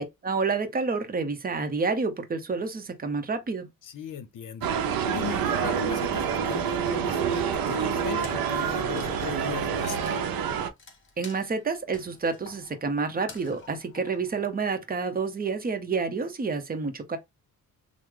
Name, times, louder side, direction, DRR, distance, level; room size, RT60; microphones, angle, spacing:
voice 1, 0.0-3.7 11.2-17.2, right 4 dB, 25° right, 0.7 m, -29 dB
voice 2, 3.8-10.2, left 8 dB, 65° left, 0.6 m, -38 dB
sound 1, 4.6-10.7, right 7 dB, 85° right, 0.6 m, -27 dB
Wood, 8.2-14.9, left 4 dB, 35° left, 1.1 m, -50 dB
3.1 x 2.0 x 3.5 m
cardioid pair, 95°, 34 cm